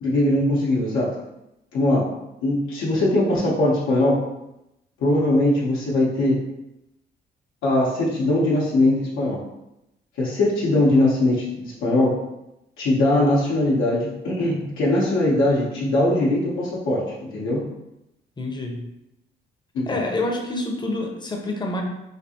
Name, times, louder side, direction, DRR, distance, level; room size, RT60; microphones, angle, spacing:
voice 1, 0.0-1.1 1.7-2.1 2.4-4.2 5.0-6.4 7.6-9.4 10.2-12.1 12.8-17.0 17.3-17.6 19.7-19.9, left 1 dB, 85° left, -6 dB, 0.8 m, -20 dB
voice 2, 18.4-18.9 19.9-21.8, left 2 dB, 20° left, 2 dB, 0.6 m, -27 dB
3.3 x 2.4 x 2.8 m, 0.89 s
cardioid pair, 90°, 20 cm